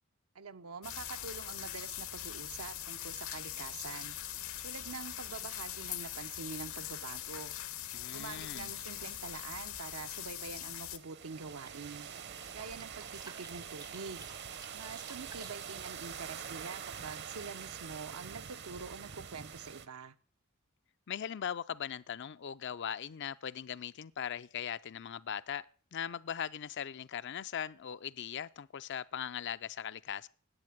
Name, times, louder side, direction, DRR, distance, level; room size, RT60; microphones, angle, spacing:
voice 1, 0.3-4.2 4.6-7.5 8.1-12.1 12.5-14.3 14.7-20.1, right 4 dB, 85° right, 0.8 m, -45 dB
sound 1, 0.8-11.0, left 12 dB, 80° left, 1.2 m, -42 dB
voice 2, 7.9-8.7 21.1-25.7 25.9-30.3, left 8 dB, 55° left, 0.5 m, -39 dB
sound 2, 10.9-19.9, right 7 dB, 55° right, 0.8 m, -45 dB
sound 3, 11.4-15.6, right 4 dB, 15° right, 0.5 m, -54 dB
10.5 x 8.6 x 7.3 m
head